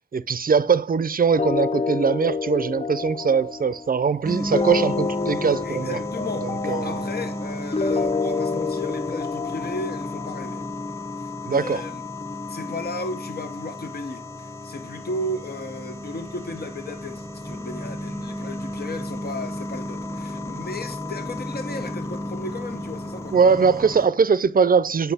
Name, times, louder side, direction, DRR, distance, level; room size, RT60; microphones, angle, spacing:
voice 1, 0.1-6.0 6.4-7.1 11.5-11.8 23.3-25.1, right 5 dB, 55° right, 0.5 m, -21 dB
sound 1, 1.4-10.6, left 4 dB, 35° left, 0.4 m, -28 dB
sound 2, 4.2-24.1, left 1 dB, 15° left, 1.0 m, -33 dB
voice 2, 5.6-10.6 11.5-12.0 12.5-23.3, left 2 dB, 65° left, 0.8 m, -34 dB
8.0 x 5.6 x 4.1 m
cardioid pair, 40°, 18 cm